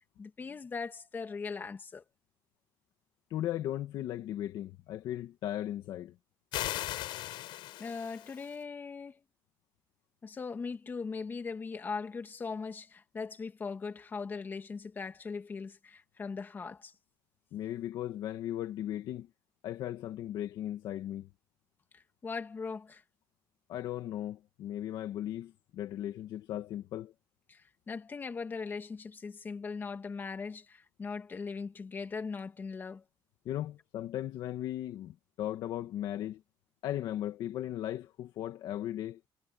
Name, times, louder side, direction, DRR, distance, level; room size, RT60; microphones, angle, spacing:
voice 1, 0.2-2.0 7.8-9.2 10.2-16.9 21.9-23.0 27.5-33.0, left 5 dB, 25° left, 2.4 m, -40 dB
voice 2, 3.3-6.2 17.5-19.3 19.6-21.3 23.7-27.1 33.5-36.4 36.8-39.2, left 12 dB, 65° left, 1.8 m, -37 dB
sound 1, 6.5-8.6, left 16 dB, 80° left, 5.3 m, -38 dB
cardioid pair, 160°, 8 cm